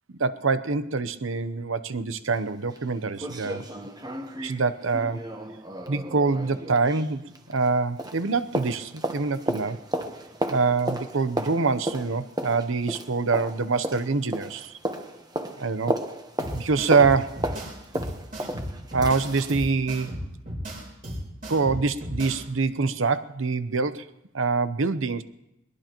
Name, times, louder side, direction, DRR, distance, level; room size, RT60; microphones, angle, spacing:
voice 1, 0.2-3.7 4.4-5.3 5.9-9.8 10.5-14.7 15.6-15.9 16.5-17.4 18.4-18.5 18.9-20.1 21.5-24.1 24.3-25.2, right 4 dB, 85° right, 12 dB, 0.8 m, -25 dB
sound 1, 2.3-2.4 2.8-2.9 3.2-7.7 8.0-19.6 20.0-20.1, right 1 dB, 20° right, 1.1 m, -34 dB
sound 2, 16.4-22.4, equal, 40° right, 4.3 m, -35 dB
21.5 x 21.0 x 3.0 m, 0.92 s
head